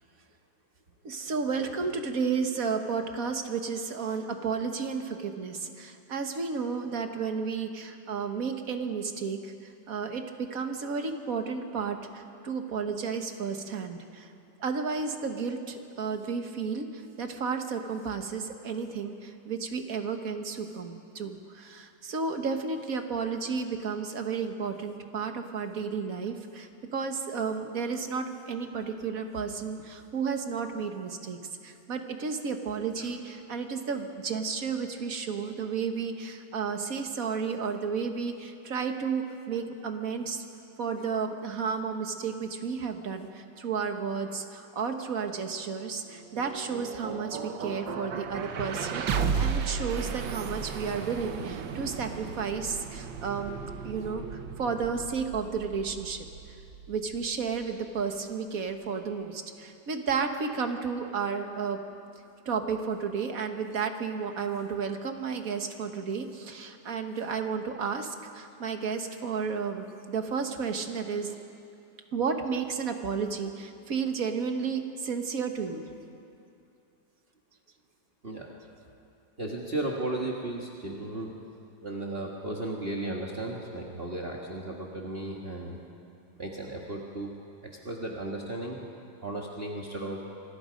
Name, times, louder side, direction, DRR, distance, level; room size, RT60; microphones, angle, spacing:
voice 1, 1.0-9.5 9.9-14.3 14.6-40.4 40.8-56.3 56.9-61.8 62.5-71.4 72.1-75.8, right 5 dB, 50° right, 5 dB, 1.8 m, -32 dB
sound 1, 46.1-58.2, right 6 dB, 85° right, 1.8 m, -35 dB
voice 2, 79.4-81.3 81.8-85.8 86.4-87.3 87.8-88.8 89.2-90.2, right 2 dB, 30° right, -2 dB, 1.9 m, -35 dB
26.5 x 25.0 x 5.2 m, 2.6 s
omnidirectional pair, 2.0 m